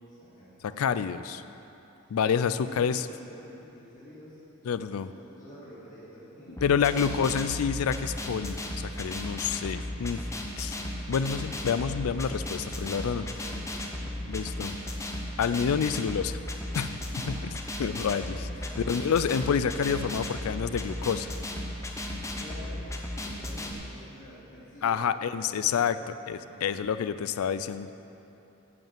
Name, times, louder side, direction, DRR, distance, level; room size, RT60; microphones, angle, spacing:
voice 1, 0.1-0.7 2.6-7.1 12.6-14.9 17.1-17.6 18.5-19.1 22.4-22.8 23.1-26.1 26.4-26.9 27.2-27.9, equal, 40° left, -11 dB, 2.5 m, -49 dB
voice 2, 0.6-1.4 2.1-3.0 4.6-5.1 6.6-8.6 8.9-10.2 10.6-10.8 11.1-13.2 14.3-14.7 15.4-16.4 16.7-17.0 17.8-18.5 18.9-21.3 24.8-26.0 26.3-27.9, left 7 dB, 75° left, 13 dB, 0.4 m, -28 dB
sound 1, 6.6-23.7, left 1 dB, 15° left, 0.7 m, -35 dB
9.4 x 5.5 x 7.5 m, 2.9 s
head